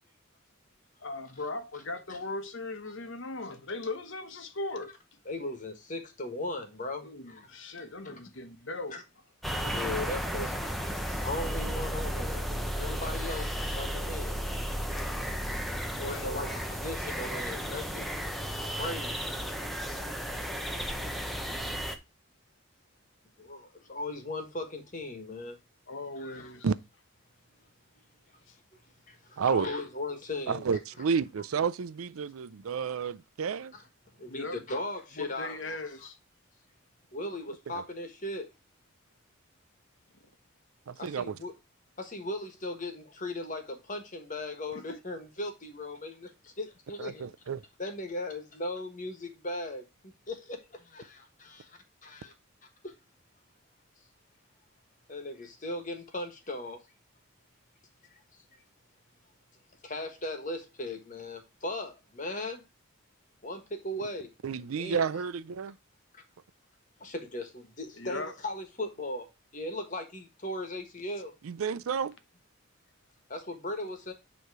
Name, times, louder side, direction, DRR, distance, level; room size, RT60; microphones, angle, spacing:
voice 1, 1.0-5.0 7.0-9.0 15.8-16.5 25.9-26.7 28.5-28.6 34.2-34.8 35.2-36.2 44.7-45.0 68.0-68.3, left 2 dB, 60° left, 1.0 m, -39 dB
voice 2, 5.3-7.6 8.0-8.2 8.9-9.0 9.6-14.3 16.0-18.1 18.6-19.3 23.4-25.6 26.2-26.5 29.1-30.6 34.2-36.1 37.1-38.5 41.0-41.5 42.0-47.3 47.8-52.3 52.8-52.9 55.1-56.8 58.1-58.4 59.8-62.6 63.4-64.3 64.8-65.1 66.1-66.2 67.0-71.3 73.3-74.1, left 2 dB, 40° left, 1.4 m, -38 dB
sound 1, 9.4-22.0, equal, ahead, 0.7 m, -34 dB
voice 3, 29.4-29.7 30.5-33.7 37.7-37.8 40.9-41.4 47.0-47.6 64.4-65.8 71.4-72.1, right 6 dB, 85° right, 0.4 m, -31 dB
9.2 x 3.2 x 4.7 m
head